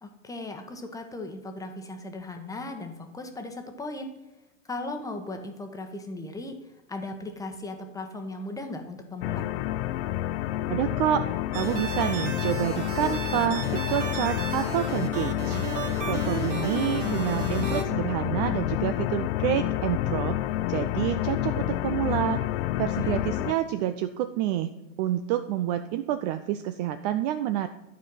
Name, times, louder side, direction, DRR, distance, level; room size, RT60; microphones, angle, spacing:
voice 1, 0.0-4.2 4.7-6.6 6.9-9.4 23.0-23.5, left 2 dB, 10° left, 5 dB, 1.1 m, -37 dB
sound 1, 9.2-23.5, left 14 dB, 50° left, 0.6 m, -29 dB
voice 2, 10.7-11.3 11.5-15.6 16.1-20.4 20.7-22.4 22.8-24.7 25.0-27.7, right 12 dB, 35° right, 10 dB, 0.4 m, -28 dB
sound 2, 11.5-17.8, right 5 dB, 65° right, 2.5 m, -35 dB
12.0 x 4.5 x 5.5 m, 0.98 s
hypercardioid pair, 120°, 39 cm